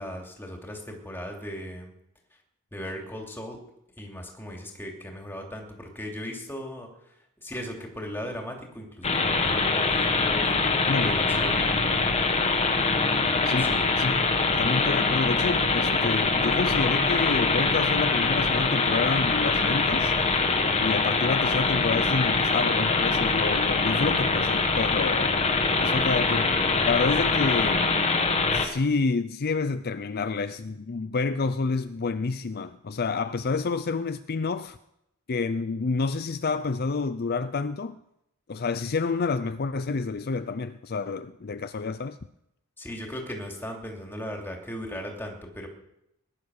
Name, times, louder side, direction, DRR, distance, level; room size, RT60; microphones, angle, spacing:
voice 1, 0.0-1.9 2.7-3.6 4.0-6.9 7.4-11.8 13.6-13.8 42.8-45.7, equal, 10° left, 2.9 m, -37 dB
sound 1, 9.0-28.7, left 3 dB, 30° left, 1.7 m, -24 dB
voice 2, 14.6-20.1 20.8-25.4 25.8-26.5 26.8-27.8 28.5-34.8 35.3-38.0 38.5-42.2, left 4 dB, 45° left, 0.5 m, -28 dB
19.5 x 11.0 x 6.5 m
head